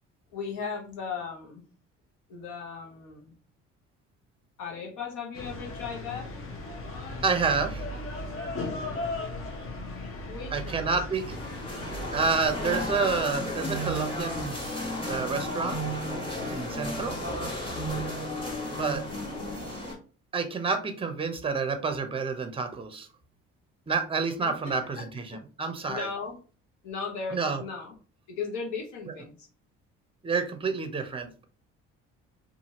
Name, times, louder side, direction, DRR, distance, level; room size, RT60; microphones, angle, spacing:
voice 1, 0.3-1.6 2.3-3.3 4.6-6.3 10.3-10.9 17.2-17.8 19.1-19.4 24.5-25.4 25.9-26.4 26.8-28.0 28.3-29.5, left 5 dB, 85° left, 0 dB, 1.0 m, -37 dB
sound 1, 5.3-13.2, left 2 dB, 45° left, 0.9 m, -37 dB
voice 2, 7.2-7.8 10.5-11.4 12.1-14.6 15.1-15.8 16.5-17.2 18.8-19.0 20.3-23.1 23.9-26.1 27.3-27.6 30.2-31.4, right 4 dB, 20° right, 8 dB, 0.6 m, -29 dB
sound 2, 11.1-19.9, equal, 15° left, 1.4 m, -33 dB
2.7 x 2.5 x 2.9 m, 0.38 s
supercardioid pair, 80°, 29 cm